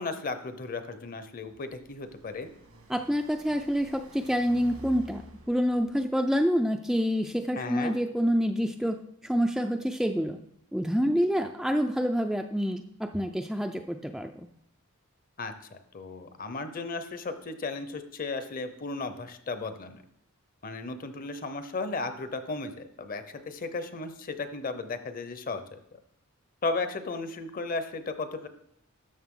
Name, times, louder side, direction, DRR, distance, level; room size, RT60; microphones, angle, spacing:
voice 1, 0.0-2.5 7.6-7.9 15.4-20.0 20.6-25.6 26.6-28.5, left 3 dB, 40° left, 9 dB, 0.7 m, -35 dB
Car passing by, 1.1-6.5, right 1 dB, 85° right, 1.8 m, -51 dB
voice 2, 2.9-5.2 5.5-10.4 10.7-14.5, equal, ahead, 4 dB, 0.3 m, -27 dB
13.0 x 6.4 x 3.8 m, 0.75 s
head